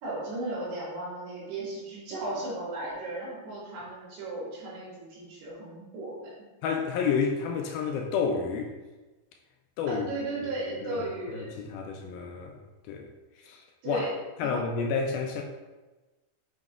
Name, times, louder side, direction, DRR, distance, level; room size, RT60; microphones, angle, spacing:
voice 1, 0.0-6.3 9.9-11.5 13.8-14.1 14.4-14.6, right 2 dB, 85° right, -6 dB, 4.3 m, -35 dB
voice 2, 6.6-8.7 9.8-10.2 10.9-11.0 11.3-12.6 12.8-13.1 13.5-14.1 14.4-15.4, left 5 dB, 80° left, 2 dB, 2.3 m, -30 dB
7.4 x 6.4 x 2.4 m, 1.2 s
omnidirectional pair, 4.6 m